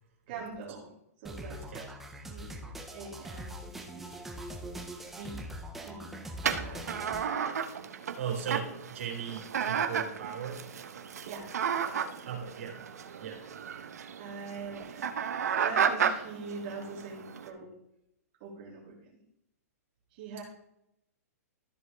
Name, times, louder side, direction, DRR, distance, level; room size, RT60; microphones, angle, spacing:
voice 1, 0.3-0.9 1.2-1.6 2.3-2.6 2.9-4.2 5.1-5.5 5.8-6.1 6.4-6.9 11.2-11.5 11.8-12.3 14.2-15.1 15.6-17.7 18.4-19.0 20.1-20.4, right 4 dB, 30° right, -3 dB, 2.6 m, -43 dB
sound 1, 1.2-7.2, right 1 dB, 5° right, 0.4 m, -42 dB
sound 2, 6.4-17.5, right 7 dB, 80° right, 0.9 m, -33 dB
voice 2, 8.1-10.7 12.2-12.8 13.2-13.4, right 7 dB, 55° right, 0 dB, 3.1 m, -37 dB
13.5 x 4.9 x 3.5 m, 0.82 s
hypercardioid pair, 180°, 9 cm